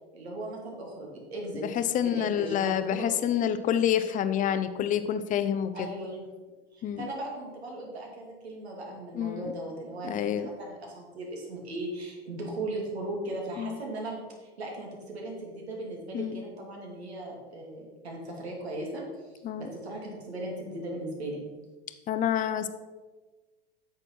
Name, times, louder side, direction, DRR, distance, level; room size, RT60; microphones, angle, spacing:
voice 1, 0.1-1.6 2.0-3.1 3.3-3.4 5.7-6.2 6.7-19.3 19.6-21.4, right 1 dB, 90° right, -1 dB, 2.7 m, -38 dB
voice 2, 1.6-5.9 6.8-7.0 9.1-9.5 10.1-10.5 13.6-13.8 16.1-16.4 19.4-19.7 22.1-22.7, left 9 dB, 25° left, 11 dB, 0.6 m, -28 dB
9.2 x 6.4 x 4.4 m, 1.3 s
hypercardioid pair, 100°, 31 cm